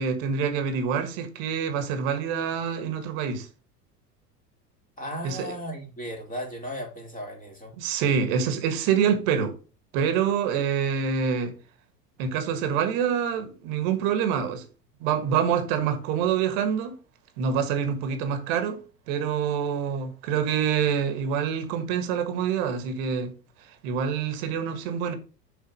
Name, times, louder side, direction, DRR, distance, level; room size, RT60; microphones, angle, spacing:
voice 1, 0.0-3.5 5.2-5.5 7.8-9.5 9.9-11.5 12.2-14.7 15.0-17.0 17.4-18.8 19.1-23.3 23.8-25.1, right 7 dB, 50° right, 1.6 m, -26 dB
voice 2, 5.0-7.7, equal, 15° left, 2.5 m, -36 dB
6.6 x 4.6 x 5.2 m
figure-of-eight pair, 80°, 49 cm